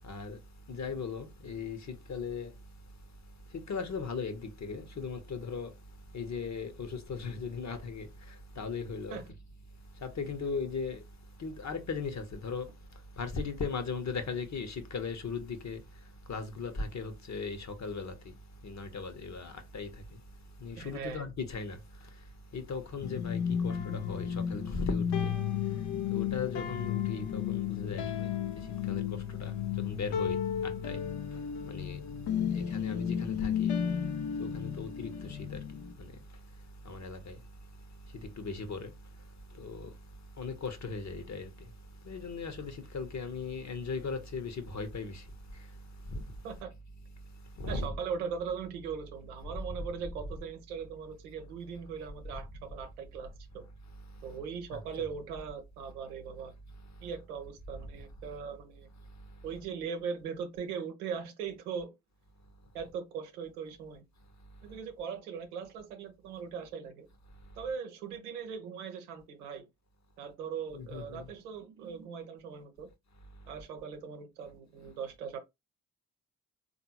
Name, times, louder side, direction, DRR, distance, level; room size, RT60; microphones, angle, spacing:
voice 1, 0.0-0.4 0.7-2.5 3.5-5.7 6.1-8.1 8.6-9.2 10.0-11.0 11.4-12.7 13.2-15.8 16.3-18.1 18.6-19.9 20.6-21.8 22.5-25.3 26.1-28.3 28.9-29.5 29.9-30.4 30.8-31.0 31.7-32.0 32.5-33.8 34.4-35.6 36.0-36.1 36.9-37.4 38.4-38.9 39.6-39.9 40.4-41.5 42.1-45.2 47.6-48.0 54.7-54.8 70.7-71.3, left 4 dB, 40° left, 1.0 m, -37 dB
voice 2, 20.8-21.3 46.4-46.7 47.7-53.7 54.2-56.5 57.0-58.9 59.4-61.9 62.7-64.0 64.6-67.1 67.6-69.6 70.2-72.9 73.5-75.4, right 6 dB, 85° right, 0.8 m, -40 dB
sound 1, 23.0-35.9, left 8 dB, 65° left, 0.8 m, -33 dB
3.8 x 2.6 x 2.8 m
hypercardioid pair, 40°, 44 cm